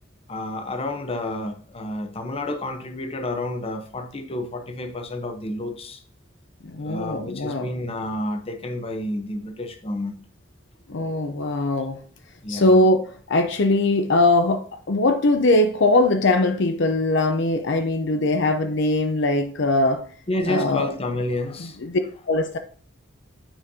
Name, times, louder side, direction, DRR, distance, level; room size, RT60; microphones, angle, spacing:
voice 1, 0.3-6.0 6.8-10.2 12.4-12.9 20.3-21.8, left 1 dB, 30° left, 0.8 m, -30 dB
voice 2, 6.6-7.7 10.9-12.0 12.5-20.0 20.5-20.9 21.6-22.0 22.3-22.6, left 2 dB, 65° left, 0.6 m, -21 dB
8.8 x 5.1 x 2.7 m
head